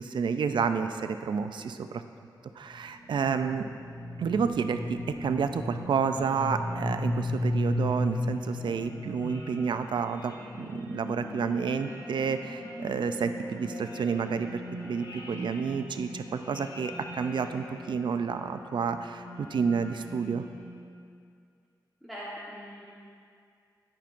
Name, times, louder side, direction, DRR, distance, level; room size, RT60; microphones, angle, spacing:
voice 1, 0.0-2.0 2.6-3.7 4.2-20.4, right 6 dB, 85° right, 8 dB, 0.4 m, -30 dB
sound 1, 2.5-20.9, left 1 dB, 75° left, 1.9 m, -37 dB
voice 2, 22.0-22.9, equal, ahead, -9 dB, 1.2 m, -41 dB
17.5 x 5.9 x 2.5 m, 2.3 s
wide cardioid pair, 155°, 8 cm